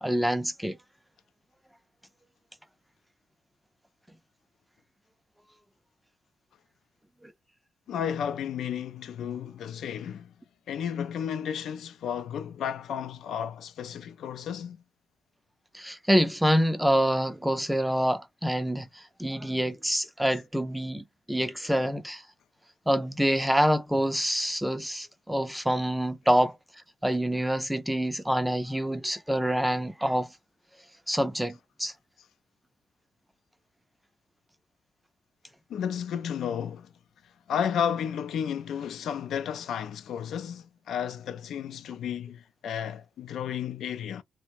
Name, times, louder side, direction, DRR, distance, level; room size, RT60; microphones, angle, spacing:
voice 1, 0.0-0.8 7.2-7.3 15.7-22.2 22.9-30.3 31.1-31.9, equal, 5° right, 0.4 m, -26 dB
voice 2, 7.9-10.3 10.7-14.8 35.7-36.9 37.5-44.2, left 8 dB, 70° left, 0.3 m, -32 dB
2.5 x 2.0 x 2.9 m
cardioid pair, 90°, 0 cm